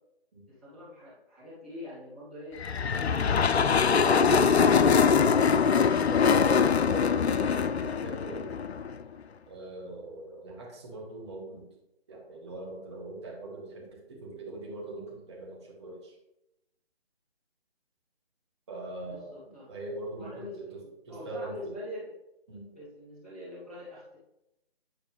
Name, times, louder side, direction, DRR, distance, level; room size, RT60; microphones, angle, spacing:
voice 1, 0.5-4.9 19.1-19.7 20.2-22.2 22.7-24.2, left 1 dB, ahead, -13 dB, 0.9 m, -44 dB
sound 1, 2.6-9.0, left 6 dB, 85° left, 0.5 m, -23 dB
voice 2, 6.0-8.5 9.5-11.6 12.1-13.8 14.1-16.1 18.7-20.5 21.1-21.7 22.5-22.7, right 2 dB, 25° right, -3 dB, 1.8 m, -41 dB
9.4 x 4.7 x 3.3 m, 0.90 s
figure-of-eight pair, 150°, 31 cm